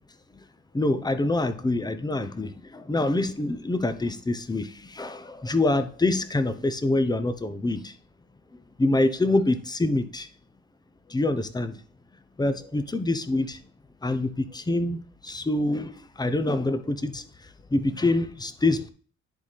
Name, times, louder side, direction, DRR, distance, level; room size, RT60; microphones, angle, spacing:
voice 1, 0.7-7.9 8.8-10.3 11.1-11.8 12.4-13.6 14.0-17.2 17.7-18.9, left 2 dB, 15° left, 11 dB, 0.8 m, -26 dB
10.5 x 4.1 x 3.4 m, 0.41 s
cardioid pair, 90°, 30 cm